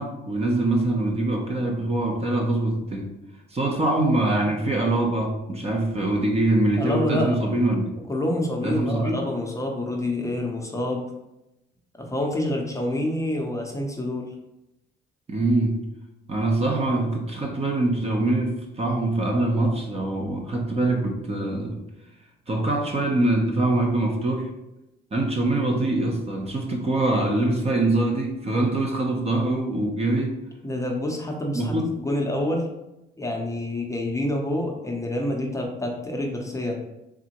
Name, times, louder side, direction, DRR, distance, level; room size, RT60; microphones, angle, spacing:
voice 1, 0.0-3.1 3.5-7.9 8.6-9.2 15.3-15.9 16.3-21.8 22.5-24.5 25.1-30.4 31.5-31.9, right 2 dB, 30° right, 1 dB, 0.7 m, -24 dB
voice 2, 6.8-7.4 8.1-11.1 12.0-14.3 30.6-32.7 33.2-36.8, left 1 dB, 15° left, 0 dB, 0.7 m, -27 dB
3.7 x 3.3 x 2.9 m, 0.91 s
cardioid pair, 90°, 20 cm